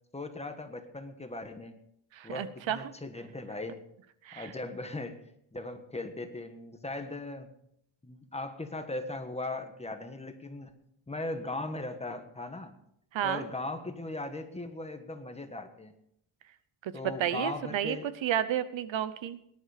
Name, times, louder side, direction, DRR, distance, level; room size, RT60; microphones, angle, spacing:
voice 1, 0.1-1.7 2.2-3.8 4.3-5.2 5.5-7.5 8.0-10.7 11.1-12.8 13.2-15.9 16.9-18.1, left 2 dB, 15° left, 7 dB, 1.3 m, -38 dB
voice 2, 2.1-2.9 4.2-4.5 13.1-13.4 16.8-16.9 17.2-18.0 18.2-19.4, right 10 dB, 65° right, 14 dB, 1.0 m, -31 dB
18.5 x 10.5 x 5.0 m, 0.74 s
cardioid pair, 160°, 48 cm